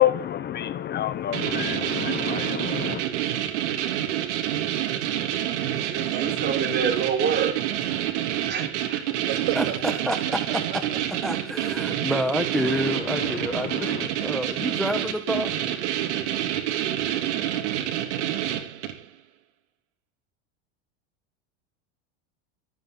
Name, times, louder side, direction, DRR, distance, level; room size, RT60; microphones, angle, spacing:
voice 1, 0.0-3.0 12.6-14.1, left 12 dB, 30° left, 0.8 m, -28 dB
sound 1, 1.3-19.1, right 11 dB, 80° right, 3.4 m, -28 dB
voice 2, 5.8-7.5 8.5-9.0, right 6 dB, 30° right, 4.5 m, -27 dB
voice 3, 9.3-11.2, right 11 dB, 60° right, 6.6 m, -39 dB
voice 4, 11.2-15.5, equal, ahead, 1.2 m, -28 dB
25.5 x 9.4 x 4.0 m
supercardioid pair, 130°, 34 cm